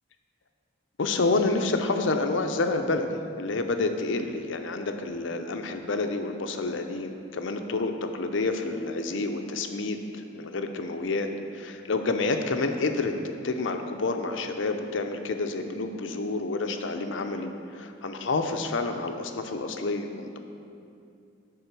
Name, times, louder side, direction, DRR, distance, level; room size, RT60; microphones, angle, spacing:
voice 1, 1.0-11.3 11.5-20.4, left 3 dB, 70° left, 6 dB, 0.6 m, -29 dB
10.5 x 3.7 x 6.8 m, 2.5 s
head